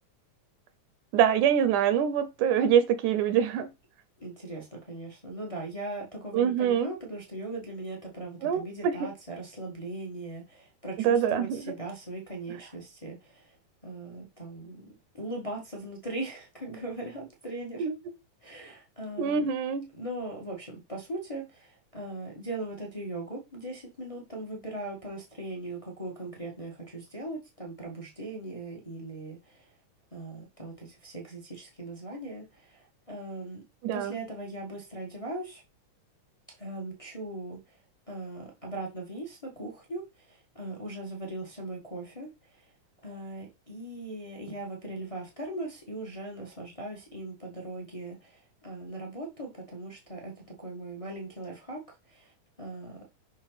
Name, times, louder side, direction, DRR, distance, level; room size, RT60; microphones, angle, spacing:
voice 1, 1.1-3.7 6.3-6.9 8.4-9.1 11.0-11.6 17.8-18.0 19.2-19.9 33.8-34.1, right 8 dB, 80° right, 2.1 m, -25 dB
voice 2, 4.2-13.5 13.8-14.9 15.2-17.9 18.4-19.5 19.9-29.7 30.1-33.6 33.9-35.6 36.6-37.8 38.1-42.6 43.0-52.3 52.6-53.0, right 2 dB, 25° left, 0.7 m, -39 dB
6.2 x 5.7 x 4.0 m
omnidirectional pair, 3.7 m